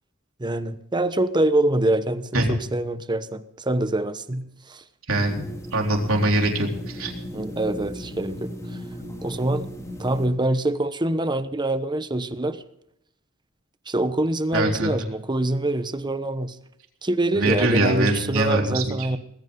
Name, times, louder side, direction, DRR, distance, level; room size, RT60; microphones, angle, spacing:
voice 1, 0.4-4.8 7.3-8.5 9.2-9.7 10.0-12.6 13.9-16.6 17.0-19.2, right 1 dB, 20° right, 11 dB, 1.0 m, -25 dB
sound 1, 5.1-10.3, left 1 dB, 15° left, 3.4 m, -36 dB
voice 2, 5.1-5.4 5.7-7.1 14.5-14.9 17.3-18.9, right 1 dB, 75° right, 1 dB, 3.9 m, -22 dB
19.5 x 15.5 x 3.8 m, 0.78 s
head